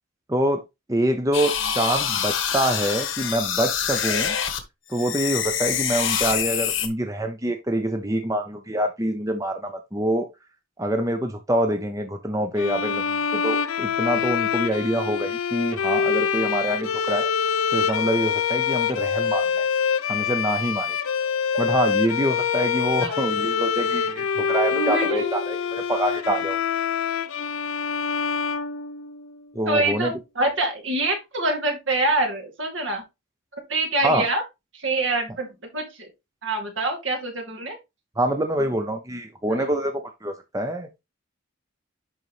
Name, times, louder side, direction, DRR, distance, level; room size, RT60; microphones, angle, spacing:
voice 1, 0.3-0.6 0.9-4.4 4.9-10.3 10.8-17.3 17.7-19.7 20.1-21.0 21.6-26.6 29.5-30.1 34.0-34.2 38.2-41.0, right 1 dB, 15° right, 0.7 m, -25 dB
sound 1, 1.3-4.6 4.9-6.9, left 8 dB, 70° left, 1.2 m, -26 dB
sound 2, 12.6-29.4, left 7 dB, 90° left, 0.6 m, -25 dB
voice 2, 24.7-25.3 29.7-33.0 33.5-34.4 34.7-35.5 35.7-36.1 36.4-37.8 39.5-39.6, right 2 dB, 65° right, 2.5 m, -25 dB
10.5 x 4.0 x 3.1 m
head